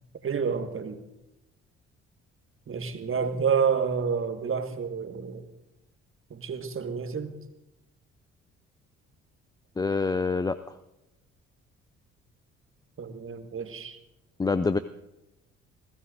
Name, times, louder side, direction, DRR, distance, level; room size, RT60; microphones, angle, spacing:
voice 1, 0.2-1.0 2.7-5.5 6.3-7.3 13.0-14.0, right 6 dB, 40° right, 7 dB, 1.6 m, -29 dB
voice 2, 9.8-10.6 14.4-14.8, left 4 dB, 10° left, 13 dB, 0.4 m, -25 dB
28.5 x 15.0 x 2.6 m, 0.93 s
figure-of-eight pair, 45°, 34 cm